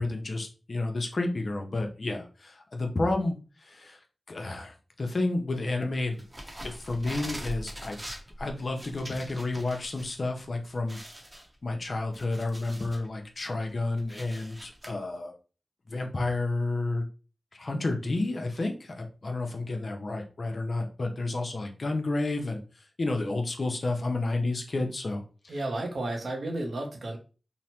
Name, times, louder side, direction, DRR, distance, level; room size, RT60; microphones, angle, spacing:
voice 1, 0.0-4.0 4.3-6.2 6.6-8.0 8.4-11.0 11.6-15.3 15.9-17.1 17.5-25.5, left 2 dB, 60° left, 3 dB, 0.5 m, -31 dB
sound 1, 6.2-10.2 10.5-10.6 10.9-13.1 13.5-14.9, equal, 25° right, 0.8 m, -42 dB
voice 2, 25.5-27.2, right 2 dB, 75° right, 2 dB, 0.7 m, -32 dB
3.0 x 2.0 x 2.8 m, 0.36 s
cardioid pair, 45°, 0 cm